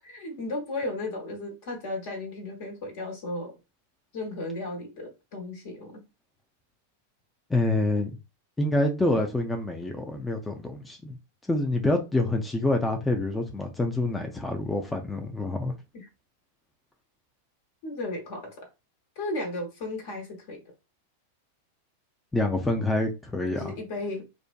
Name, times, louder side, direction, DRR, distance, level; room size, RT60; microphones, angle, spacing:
voice 1, 0.0-3.6 4.1-6.0 12.2-12.3 15.9-16.1 17.8-18.7 19.1-20.6 23.5-24.2, left 2 dB, 60° left, 1.1 m, -35 dB
voice 2, 7.5-8.2 8.6-11.2 11.5-15.7 22.3-23.7, left 2 dB, 10° left, 0.4 m, -27 dB
2.5 x 2.2 x 2.4 m
hypercardioid pair, 100°, 0 cm